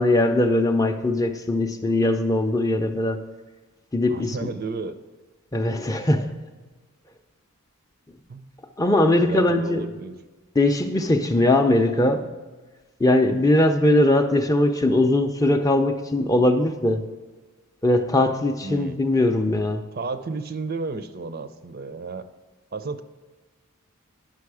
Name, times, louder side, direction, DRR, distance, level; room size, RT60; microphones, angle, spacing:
voice 1, 0.0-3.2 3.9-4.5 5.5-6.3 8.8-9.9 10.6-12.2 13.0-17.0 17.8-19.8, left 1 dB, 15° left, 5 dB, 0.5 m, -20 dB
voice 2, 4.1-4.9 8.3-8.5 9.1-10.1 18.6-19.0 19.9-22.3 22.7-23.0, right 4 dB, 45° right, 11 dB, 0.5 m, -32 dB
10.5 x 6.1 x 4.8 m, 1.3 s
head